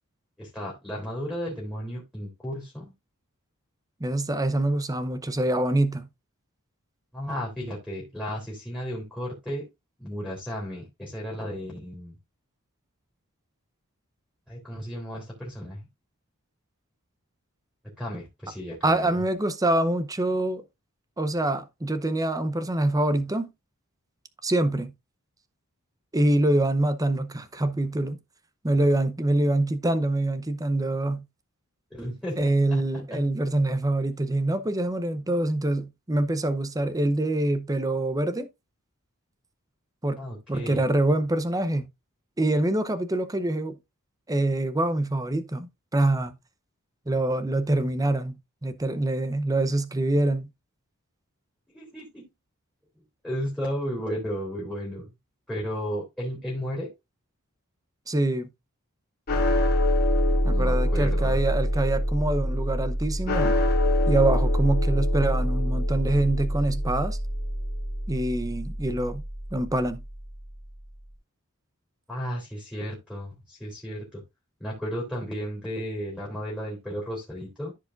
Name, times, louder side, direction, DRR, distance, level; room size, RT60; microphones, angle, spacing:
voice 1, 0.4-2.9 7.1-9.6 10.0-12.1 14.5-15.8 18.0-19.2 31.9-33.2 40.2-40.8 51.7-52.3 53.2-55.1 55.5-56.9 60.5-61.4 72.1-74.2 74.6-77.7, equal, 5° left, 3.3 m, -34 dB
voice 2, 4.0-6.1 18.8-20.6 21.2-23.5 24.4-24.9 26.1-28.2 28.6-31.2 32.4-38.5 40.0-40.2 40.5-41.9 42.4-43.8 44.3-46.3 47.1-50.5 58.1-58.5 60.4-63.6 64.1-67.2 68.1-69.2 69.5-70.0, right 1 dB, 15° right, 0.7 m, -25 dB
sound 1, 59.3-69.7, equal, 45° left, 2.9 m, -25 dB
14.5 x 4.8 x 2.5 m
head